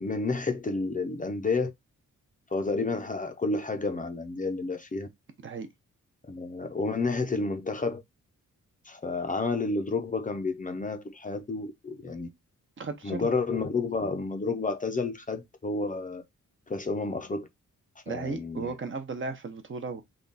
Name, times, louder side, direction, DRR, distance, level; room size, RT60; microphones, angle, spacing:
voice 1, 0.0-1.7 2.5-5.1 6.3-8.0 8.8-12.3 13.0-16.2 16.7-17.5 18.1-18.8, left 3 dB, 25° left, 0.5 m, -30 dB
voice 2, 12.8-13.3 18.1-20.0, right 4 dB, 40° right, 0.7 m, -35 dB
3.6 x 2.3 x 3.8 m
wide cardioid pair, 125°, 31 cm